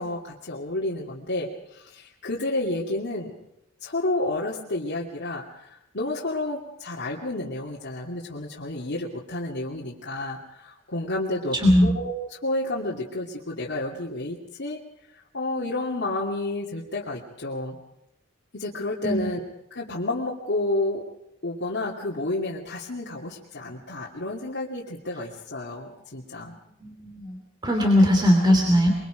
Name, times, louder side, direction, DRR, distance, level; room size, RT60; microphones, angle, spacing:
voice 1, 0.0-3.3 3.8-11.6 11.8-12.1 12.4-14.8 15.3-17.8 18.5-19.4 19.7-21.0 21.4-26.5, left 2 dB, 60° left, -5 dB, 2.6 m, -30 dB
voice 2, 11.5-11.9 19.0-19.3 26.8-28.9, equal, 20° right, 2 dB, 3.0 m, -20 dB
24.5 x 23.5 x 5.1 m, 0.84 s
head